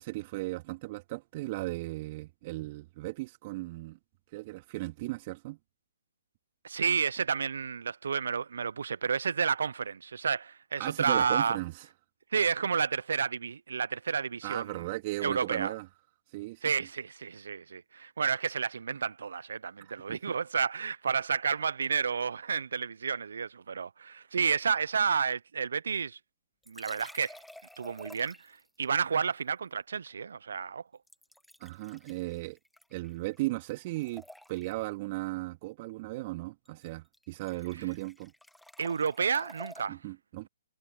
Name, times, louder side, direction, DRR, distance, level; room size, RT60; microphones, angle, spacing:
voice 1, 0.0-4.0 4.3-5.6 10.8-11.8 14.4-15.9 16.3-16.6 19.8-20.2 31.6-32.6 32.9-34.2 34.5-38.3 39.9-40.5, right 20 dB, 40° right, 2.7 m, -36 dB
voice 2, 6.6-11.6 12.3-14.8 15.2-15.7 16.6-26.2 26.7-27.3 27.8-30.8 38.8-40.0, right 6 dB, 70° right, 0.8 m, -31 dB
sound 1, 26.6-28.7 31.1-33.4 33.7-34.9 36.6-36.9 37.1-39.8, left 1 dB, ahead, 1.8 m, -51 dB
hypercardioid pair, 135°, 0 cm